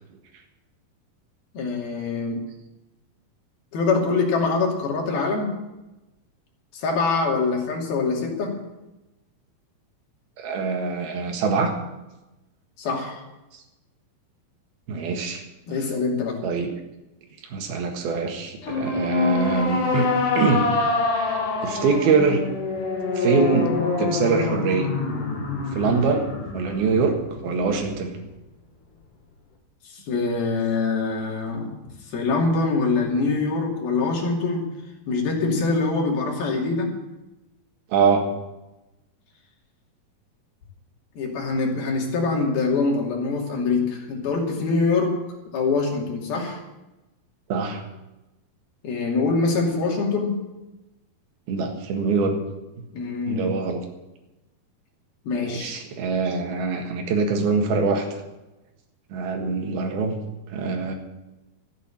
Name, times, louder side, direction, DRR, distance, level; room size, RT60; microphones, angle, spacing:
voice 1, 1.5-2.5 3.7-5.6 6.7-8.6 12.8-13.2 15.7-16.4 29.9-31.7 32.1-34.7 35.1-37.0 41.2-45.2 45.5-46.6 48.8-50.4 52.9-53.5 55.3-55.8, left 4 dB, 75° left, 0 dB, 4.6 m, -24 dB
voice 2, 10.4-11.8 13.5-13.6 14.9-15.4 15.8-15.9 16.4-16.7 17.5-20.1 20.3-20.6 21.2-22.4 23.1-23.7 24.0-24.9 25.7-26.3 26.5-28.2 37.9-38.3 47.5-47.8 51.5-52.4 53.2-53.8 55.4-58.1 59.1-60.2 60.5-60.9, right 5 dB, 80° right, 4 dB, 3.6 m, -23 dB
sound 1, 18.6-28.0, left 4 dB, 60° left, 3.7 m, -26 dB
14.0 x 9.3 x 8.7 m, 1.0 s
omnidirectional pair, 4.4 m